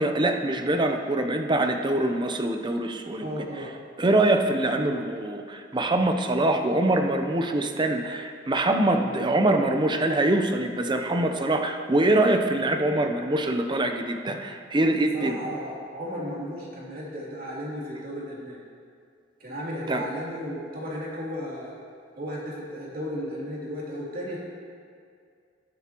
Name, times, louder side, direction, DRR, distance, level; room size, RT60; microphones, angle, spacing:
voice 1, 0.0-3.3 4.0-15.4 19.9-20.0, right 1 dB, 25° right, 5 dB, 0.7 m, -24 dB
voice 2, 3.2-3.7 15.0-18.6 19.4-21.7 22.2-24.4, equal, 55° right, -5 dB, 2.8 m, -34 dB
18.5 x 7.8 x 3.0 m, 2.2 s
head